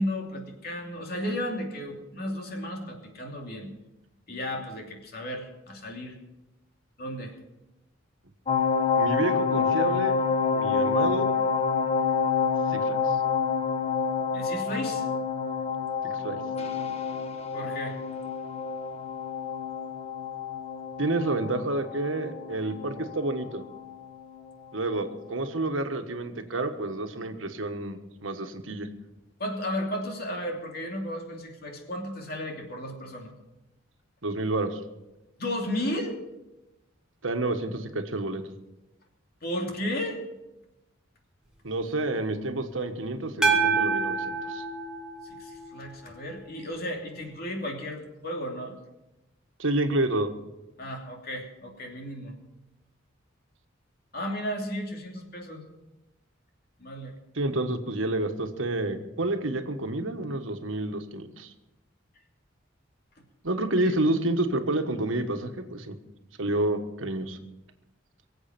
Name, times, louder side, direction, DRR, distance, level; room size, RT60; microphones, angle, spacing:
voice 1, 0.0-3.7 4.3-6.2 7.0-7.3 14.3-15.1 17.5-18.0 29.4-33.3 35.4-36.1 39.4-40.2 45.3-48.7 50.8-52.3 54.1-55.6 56.8-57.1, equal, 50° left, 1 dB, 2.9 m, -34 dB
sound 1, 8.5-24.0 24.4-24.5, left 5 dB, 30° left, 1.3 m, -28 dB
voice 2, 9.0-10.2 10.5-11.3 12.7-13.2 16.0-16.4 21.0-23.6 24.7-28.9 34.2-34.8 37.2-38.4 41.6-44.6 49.6-50.3 57.3-61.5 63.4-66.0 66.4-67.4, right 2 dB, 85° right, 6 dB, 1.4 m, -29 dB
sound 2, 43.4-45.8, right 4 dB, 5° right, 2.1 m, -27 dB
23.0 x 8.0 x 6.0 m, 0.99 s
head